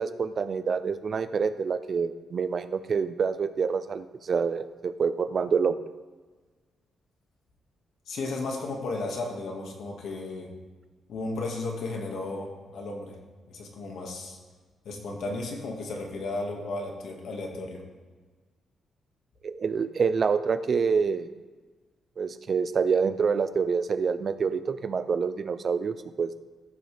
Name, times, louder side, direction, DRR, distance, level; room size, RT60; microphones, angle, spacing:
voice 1, 0.0-5.8 19.4-21.3 22.2-26.4, right 5 dB, 45° right, 12 dB, 0.5 m, -27 dB
voice 2, 8.1-10.5 11.1-13.2 13.5-14.4 14.9-17.8, left 2 dB, 75° left, 1 dB, 1.9 m, -34 dB
14.5 x 6.3 x 3.5 m, 1.4 s
cardioid pair, 110°, 0 cm